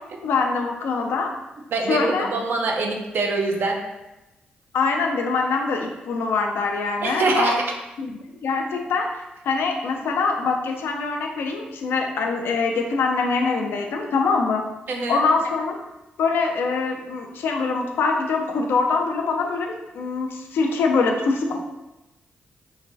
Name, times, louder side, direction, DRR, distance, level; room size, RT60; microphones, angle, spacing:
voice 1, 0.2-1.3 1.9-2.3 4.7-7.6 8.0-9.1 9.5-14.6 15.1-15.8 16.2-21.6, left 4 dB, 75° left, 2 dB, 0.3 m, -23 dB
voice 2, 1.7-3.8 7.0-7.6 14.9-15.2, right 3 dB, 65° right, 2 dB, 0.5 m, -24 dB
3.1 x 2.2 x 2.6 m, 0.99 s
supercardioid pair, 45°, 4 cm